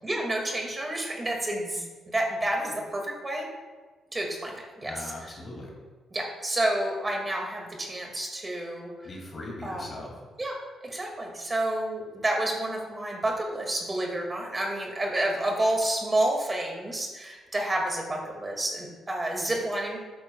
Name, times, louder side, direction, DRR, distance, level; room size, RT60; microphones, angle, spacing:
voice 1, 0.0-3.5 4.1-5.0 6.1-8.9 9.6-9.8 10.4-10.5 10.8-20.0, right 1 dB, 25° right, 0 dB, 2.0 m, -29 dB
voice 2, 4.8-5.7 9.0-10.1, left 2 dB, 45° left, -1 dB, 2.4 m, -39 dB
12.0 x 8.7 x 2.3 m, 1.3 s
cardioid pair, 75°, 0 cm